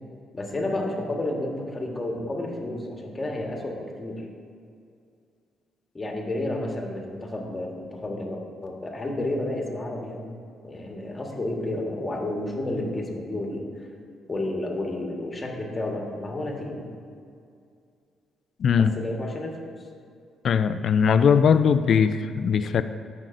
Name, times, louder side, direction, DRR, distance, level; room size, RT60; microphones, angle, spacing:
voice 1, 0.3-4.2 5.9-10.3 10.6-13.7 14.3-16.8 18.7-19.6, left 1 dB, 25° left, 0 dB, 1.4 m, -31 dB
voice 2, 18.6-18.9 20.4-22.8, left 6 dB, 60° left, 12 dB, 0.3 m, -20 dB
13.5 x 5.4 x 2.6 m, 2.3 s
cardioid pair, 90°, 0 cm